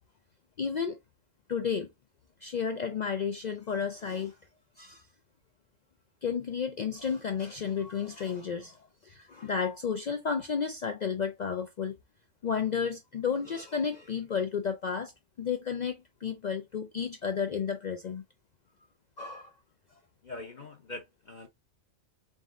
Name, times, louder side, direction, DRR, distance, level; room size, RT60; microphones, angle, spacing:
voice 1, 0.6-1.0 1.5-1.9 2.4-4.4 4.8-5.0 6.2-12.0 12.4-15.1 15.4-18.2 19.2-19.5, left 6 dB, 75° left, 0.4 m, -32 dB
voice 2, 20.2-21.5, left 2 dB, 45° left, 0.7 m, -43 dB
4.1 x 3.7 x 2.4 m
omnidirectional pair, 1.3 m